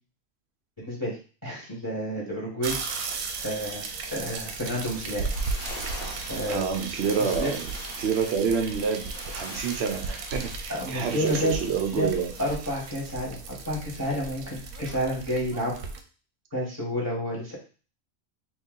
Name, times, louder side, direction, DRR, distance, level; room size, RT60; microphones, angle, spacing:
voice 1, 0.8-1.2 1.4-3.1 3.4-5.3 6.3-6.6 7.2-7.5 10.7-11.5 11.9-12.1 12.4-15.7 16.5-17.5, equal, 15° left, -5 dB, 1.0 m, -30 dB
sound 1, 2.6-16.0, right 4 dB, 80° right, 1.0 m, -36 dB
sound 2, 5.2-12.6, equal, 65° left, 1.3 m, -43 dB
voice 2, 6.5-7.6 8.0-12.3, right 6 dB, 60° right, 4 dB, 0.7 m, -28 dB
3.0 x 2.7 x 3.7 m, 0.37 s
omnidirectional pair, 1.5 m